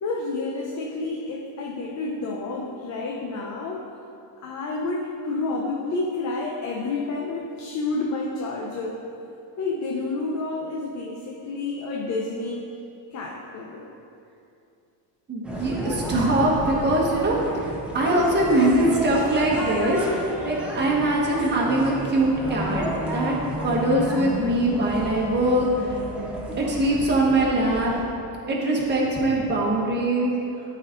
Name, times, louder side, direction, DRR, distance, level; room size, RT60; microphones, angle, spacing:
voice 1, 0.0-3.8 4.4-9.0 9.6-12.7 13.1-13.9, left 3 dB, 40° left, -1 dB, 0.7 m, -29 dB
voice 2, 15.3-22.8 23.1-23.3 23.6-26.0 26.6-27.9 28.5-30.3, right 1 dB, 25° right, -3 dB, 1.4 m, -22 dB
sound 1, 15.4-28.0, equal, ahead, 0.9 m, -32 dB
12.0 x 4.3 x 3.9 m, 2.6 s
cardioid pair, 160°, 46 cm